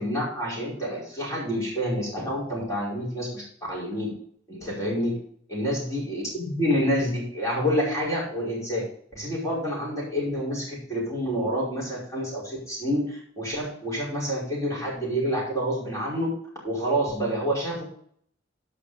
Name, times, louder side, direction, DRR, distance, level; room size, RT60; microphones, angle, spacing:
voice 1, 0.0-4.1 4.5-5.2 5.5-8.8 9.1-16.3 16.6-17.8, equal, 15° left, -5 dB, 5.1 m, -28 dB
15.0 x 5.6 x 5.1 m, 0.63 s
head